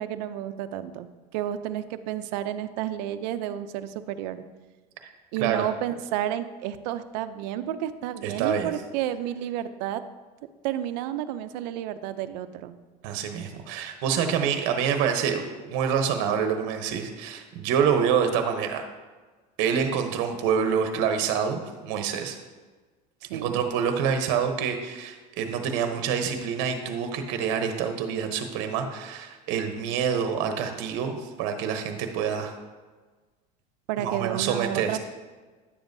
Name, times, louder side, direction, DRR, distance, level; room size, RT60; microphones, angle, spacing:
voice 1, 0.0-4.4 5.3-10.0 10.6-12.8 23.2-23.6 33.9-35.0, right 11 dB, 85° right, 12 dB, 0.5 m, -31 dB
voice 2, 8.2-8.7 13.0-18.8 19.6-22.4 23.3-32.5 34.0-35.0, right 7 dB, 70° right, 6 dB, 0.9 m, -27 dB
9.9 x 7.0 x 2.6 m, 1.3 s
supercardioid pair, 130°, 21 cm